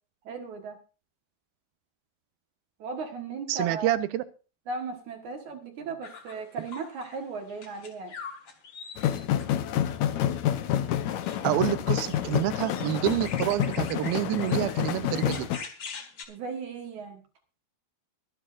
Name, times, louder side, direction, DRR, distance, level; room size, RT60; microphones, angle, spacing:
voice 1, 0.3-0.8 2.8-3.9 4.7-8.1 16.3-17.2, right 4 dB, 60° right, 4 dB, 2.5 m, -36 dB
voice 2, 3.5-4.2 11.4-15.5, right 14 dB, 80° right, 13 dB, 2.5 m, -28 dB
sound 1, 6.0-7.2 7.5-9.5 11.1-16.2, left 5 dB, 50° left, 1.5 m, -44 dB
sound 2, 9.0-15.6, left 11 dB, 80° left, 1.6 m, -28 dB
23.0 x 9.9 x 2.5 m, 0.35 s
omnidirectional pair, 4.5 m